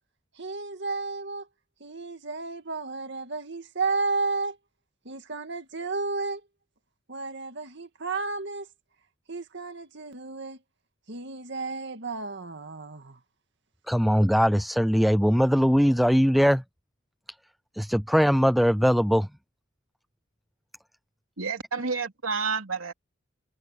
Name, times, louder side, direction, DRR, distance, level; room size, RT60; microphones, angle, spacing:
voice 1, 0.4-1.5 1.8-4.6 5.1-6.4 7.1-8.7 9.3-10.6 11.1-13.2, right 3 dB, 60° right, 2.1 m, -32 dB
voice 2, 13.9-16.6 17.7-19.3, equal, ahead, 0.4 m, -21 dB
voice 3, 21.4-22.9, right 5 dB, 90° right, 3.0 m, -29 dB
head